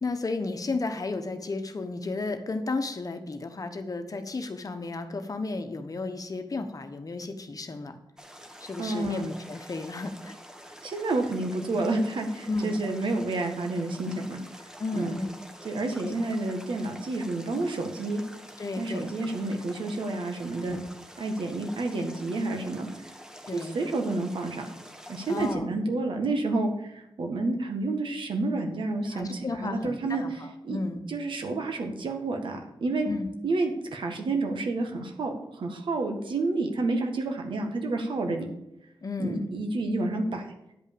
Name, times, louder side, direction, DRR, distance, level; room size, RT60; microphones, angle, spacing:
voice 1, 0.0-8.0 8.6-10.3 12.5-12.8 14.8-15.3 16.0-16.1 18.6-19.1 20.6-20.9 23.5-23.8 25.3-25.7 29.1-30.3 30.7-31.0 33.1-33.3 39.0-39.5, left 3 dB, 45° left, 7 dB, 1.1 m, -33 dB
sound 1, 8.2-25.6, equal, 5° right, 1.4 m, -47 dB
voice 2, 8.8-9.2 10.8-14.4 14.9-15.2 15.6-18.2 18.8-20.8 21.2-22.9 23.5-24.6 25.1-30.8 31.1-33.1 33.4-38.5 39.2-40.5, right 2 dB, 75° right, 4 dB, 1.7 m, -29 dB
9.8 x 5.4 x 7.0 m, 0.85 s
cardioid pair, 70°, 9 cm